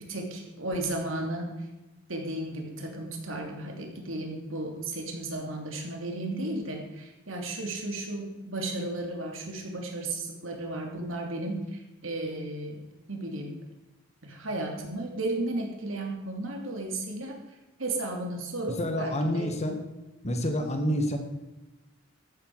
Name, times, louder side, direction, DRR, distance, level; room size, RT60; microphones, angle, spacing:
voice 1, 0.0-1.6 2.1-12.8 13.1-13.5 14.2-17.4 17.8-19.5 20.6-21.0, right 2 dB, 70° right, 2 dB, 2.9 m, -34 dB
voice 2, 18.8-19.8 20.2-21.2, left 1 dB, 35° left, 5 dB, 1.8 m, -28 dB
13.5 x 11.5 x 4.8 m, 1.0 s
head